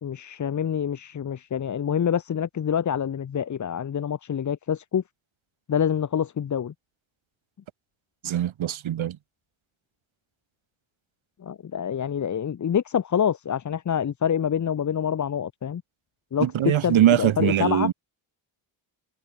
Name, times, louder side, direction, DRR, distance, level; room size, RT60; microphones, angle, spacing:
voice 1, 0.0-5.0 5.7-6.7 11.4-15.8 16.3-17.9, left 8 dB, 35° left, 0.8 m, -26 dB
voice 2, 8.2-9.2 16.4-17.9, right 11 dB, 75° right, 2.4 m, -22 dB
cardioid pair, 75°, 48 cm